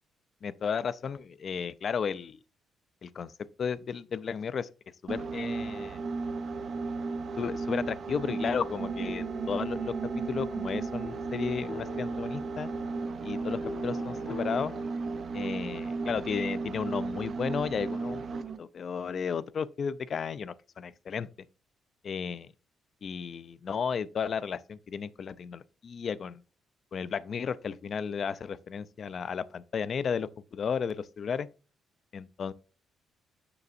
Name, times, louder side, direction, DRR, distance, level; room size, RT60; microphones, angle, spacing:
voice 1, 0.4-2.4 3.0-3.3 3.6-4.7 5.0-6.0 7.4-12.7 13.2-14.7 15.3-18.2 18.6-21.3 22.0-22.5 23.0-26.4 26.9-31.5 32.1-32.5, left 6 dB, 50° left, 0.4 m, -34 dB
sound 1, 5.1-18.6, right 4 dB, 50° right, 0.5 m, -34 dB
sound 2, 8.2-14.9, left 5 dB, 65° left, 0.9 m, -46 dB
6.8 x 6.0 x 2.5 m
cardioid pair, 90°, 0 cm